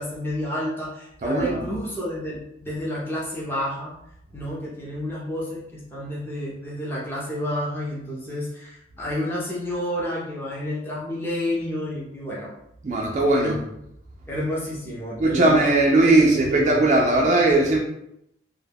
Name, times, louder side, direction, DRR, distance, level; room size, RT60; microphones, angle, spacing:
voice 1, 0.0-3.9 4.3-12.5 13.4-13.6 14.3-15.6 16.0-16.8, left 1 dB, 10° left, -6 dB, 0.5 m, -30 dB
voice 2, 1.2-1.8 12.8-13.6 15.2-17.8, right 2 dB, 40° right, -1 dB, 0.3 m, -19 dB
2.2 x 2.1 x 3.3 m, 0.80 s
head